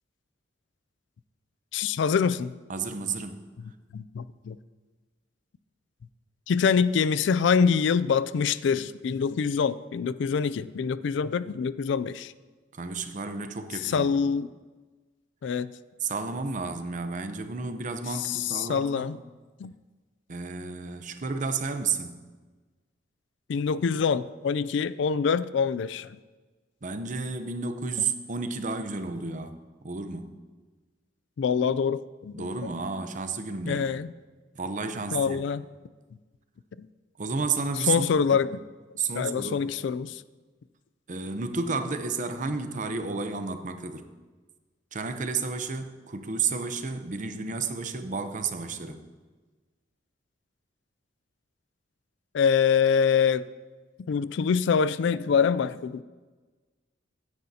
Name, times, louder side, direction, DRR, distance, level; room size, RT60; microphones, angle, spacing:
voice 1, 1.7-2.5 3.9-4.6 6.5-12.3 13.8-14.5 15.4-15.7 18.2-19.2 19.6-19.7 23.5-26.1 31.4-32.5 33.7-34.1 35.1-35.6 36.8-36.9 37.9-38.6 39.1-40.2 52.3-53.4 54.1-56.0, left 6 dB, 70° left, 16 dB, 0.3 m, -25 dB
voice 2, 2.7-3.4 12.7-14.1 16.0-19.1 20.3-22.2 26.8-29.6 29.8-30.3 32.3-34.0 34.5-35.5 37.2-38.4 39.0-39.7 41.1-44.0 44.9-49.0, right 4 dB, 45° right, 8 dB, 0.8 m, -32 dB
16.0 x 9.7 x 2.8 m, 1.3 s
head